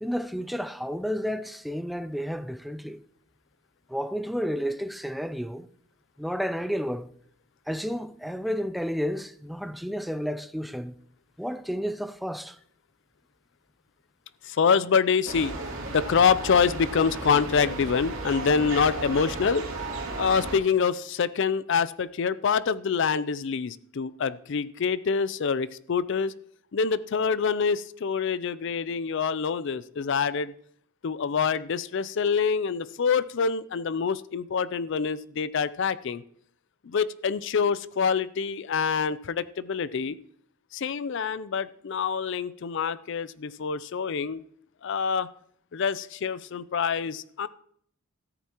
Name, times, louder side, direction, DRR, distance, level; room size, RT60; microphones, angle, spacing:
voice 1, 0.0-3.0 3.9-5.7 6.2-7.1 7.7-10.9 11.4-12.6, equal, ahead, 0.4 m, -31 dB
voice 2, 14.4-15.5 15.9-19.7 20.2-26.3 26.7-30.5 31.0-36.2 36.8-40.2 40.7-44.4 44.8-45.3 45.7-47.5, left 6 dB, 60° left, 0.4 m, -26 dB
sound 1, 15.3-20.6, right 2 dB, 75° right, 2.6 m, -34 dB
13.5 x 13.5 x 3.0 m
head